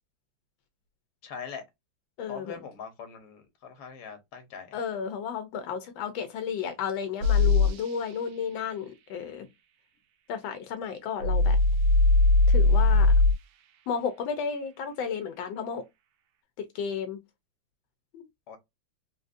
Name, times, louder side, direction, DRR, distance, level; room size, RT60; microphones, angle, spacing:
voice 1, 1.2-1.6 2.3-4.7 18.5-18.6, left 6 dB, 65° left, 1.4 m, -42 dB
voice 2, 2.2-2.6 4.7-9.5 10.3-11.6 12.5-13.1 13.9-15.8 16.6-17.2 18.1-18.2, left 6 dB, 85° left, 1.4 m, -33 dB
sound 1, 7.2-7.7 11.2-13.3, left 3 dB, 75° right, 1.2 m, -20 dB
3.9 x 2.5 x 2.5 m
omnidirectional pair, 2.1 m